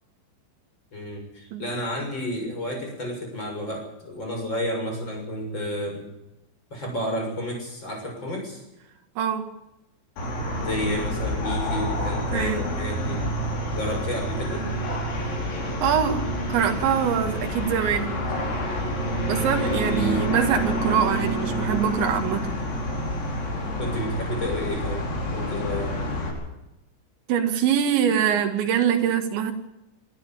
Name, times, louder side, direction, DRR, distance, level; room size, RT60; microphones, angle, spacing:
voice 1, 0.9-6.0 6.7-8.6 10.6-13.2 13.7-14.7 19.7-20.3 21.1-21.3 23.8-25.1 25.3-26.0, left 1 dB, 25° left, 2 dB, 7.2 m, -31 dB
voice 2, 9.2-9.5 12.3-12.6 15.8-18.1 19.3-22.5 27.3-29.5, right 8 dB, 75° right, 6 dB, 4.1 m, -24 dB
sound 1, 10.2-26.3, equal, 85° left, 7.8 m, -28 dB
24.5 x 13.0 x 8.9 m, 0.91 s
omnidirectional pair, 5.3 m